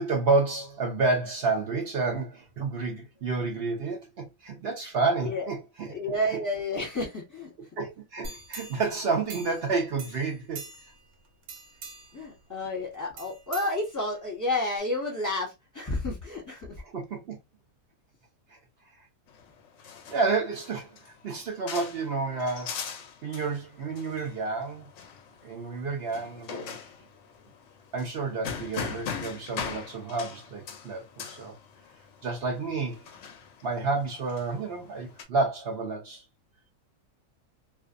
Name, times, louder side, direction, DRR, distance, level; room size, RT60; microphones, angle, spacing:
voice 1, 0.0-5.9 7.8-10.7 16.8-17.4 20.1-22.8 23.2-24.9 25.4-26.8 27.9-31.5 32.2-33.0 33.6-36.2, right 3 dB, 60° right, 0.7 m, -30 dB
voice 2, 5.9-7.5 12.1-16.8, left 1 dB, 15° left, 0.8 m, -31 dB
sound 1, 8.2-9.7 10.0-11.1 11.4-12.2 13.2-14.3 14.8-14.9, right 3 dB, 75° right, 1.2 m, -43 dB
sound 2, 19.3-35.2, left 7 dB, 65° left, 0.7 m, -41 dB
2.5 x 2.4 x 2.4 m
omnidirectional pair, 1.6 m